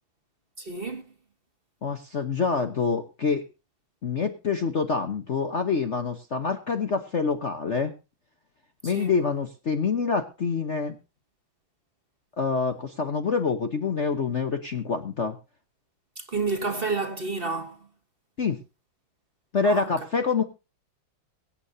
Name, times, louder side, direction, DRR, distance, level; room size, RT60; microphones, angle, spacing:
voice 1, 0.6-1.0 8.8-9.1 16.2-17.8 19.6-19.9, right 3 dB, 30° right, 1.4 m, -30 dB
voice 2, 1.8-3.4 4.0-7.9 8.8-11.0 12.4-15.4 18.4-18.6 19.5-20.4, left 5 dB, 45° left, 1.0 m, -26 dB
23.5 x 8.8 x 2.7 m
omnidirectional pair, 2.2 m